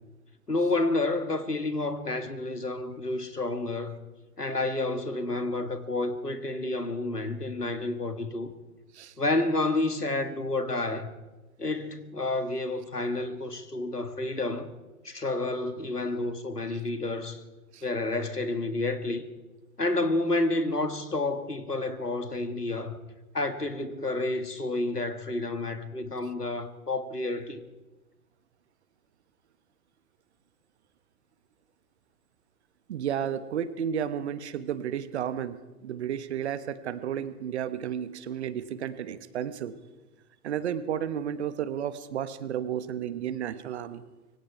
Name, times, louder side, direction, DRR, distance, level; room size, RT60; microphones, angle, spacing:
voice 1, 0.5-4.1 4.4-8.5 9.2-11.2 11.6-14.7 15.0-17.4 17.8-19.2 19.8-23.0 23.3-27.6, left 2 dB, 85° left, 2.0 m, -30 dB
voice 2, 32.9-39.7 40.4-44.0, right 9 dB, 45° right, 1.3 m, -32 dB
25.5 x 23.5 x 4.7 m
figure-of-eight pair, 115°, 45 cm